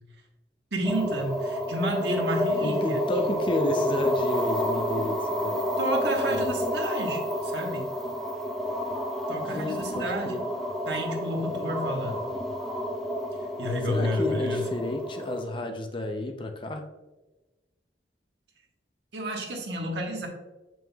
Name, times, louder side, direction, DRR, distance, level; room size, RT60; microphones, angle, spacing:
voice 1, 0.7-3.3 5.8-7.9 9.3-10.4 10.8-12.2 13.6-14.7 19.1-20.3, equal, 75° right, 0 dB, 1.4 m, -31 dB
sound 1, 0.8-15.4, equal, ahead, 0.9 m, -29 dB
voice 2, 2.6-5.7 9.4-10.4 13.9-16.8, left 2 dB, 30° left, 5 dB, 0.6 m, -31 dB
7.1 x 6.1 x 2.3 m, 1.1 s
head